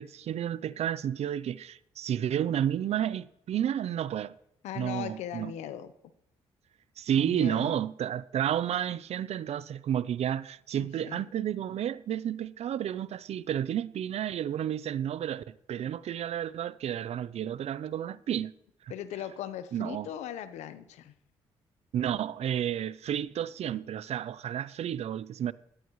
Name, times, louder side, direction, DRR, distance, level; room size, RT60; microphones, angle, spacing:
voice 1, 0.0-4.3 4.7-5.5 7.0-18.5 19.7-20.1 21.9-25.5, right 10 dB, 65° right, 0.6 m, -31 dB
voice 2, 4.6-5.9 7.2-7.8 10.8-11.2 18.9-21.1, left 10 dB, 85° left, 1.0 m, -39 dB
18.5 x 13.5 x 3.2 m
supercardioid pair, 55°, 11 cm